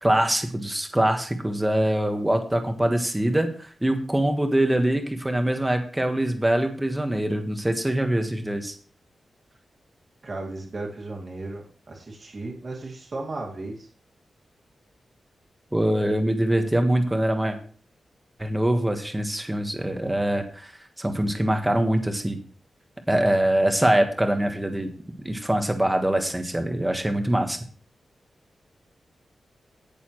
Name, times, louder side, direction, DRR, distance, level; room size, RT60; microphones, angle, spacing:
voice 1, 0.0-8.7 15.7-17.6 18.4-20.7 21.0-22.4 23.1-24.9 25.2-27.6, right 1 dB, 10° right, 5 dB, 1.5 m, -23 dB
voice 2, 10.2-13.9, right 2 dB, 35° right, -1 dB, 2.2 m, -35 dB
17.5 x 7.0 x 3.2 m, 0.43 s
wide cardioid pair, 175°, 0 cm